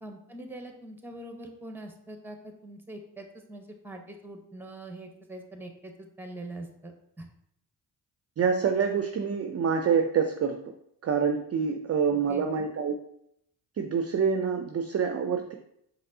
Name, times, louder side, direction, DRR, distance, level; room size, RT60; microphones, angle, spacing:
voice 1, 0.0-7.3 12.1-12.5, right 1 dB, 5° right, 5 dB, 0.8 m, -43 dB
voice 2, 8.4-10.6 11.0-13.0 13.8-15.5, right 6 dB, 35° right, 5 dB, 0.4 m, -26 dB
5.1 x 3.1 x 2.7 m, 0.74 s
supercardioid pair, 45°, 46 cm